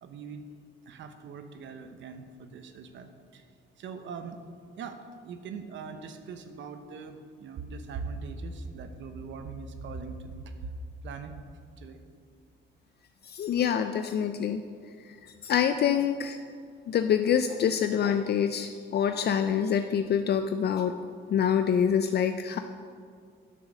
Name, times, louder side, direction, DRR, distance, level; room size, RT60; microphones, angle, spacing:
voice 1, 0.0-0.5 0.9-3.4 3.8-4.4 4.8-10.5 11.0-11.3 11.8-12.0, right 4 dB, 70° right, 8 dB, 0.9 m, -41 dB
voice 2, 13.2-14.6 15.0-16.4 16.9-21.0 21.3-22.6, left 8 dB, 55° left, 8 dB, 0.5 m, -26 dB
9.2 x 6.4 x 6.2 m, 2.2 s
cardioid pair, 90°, 20 cm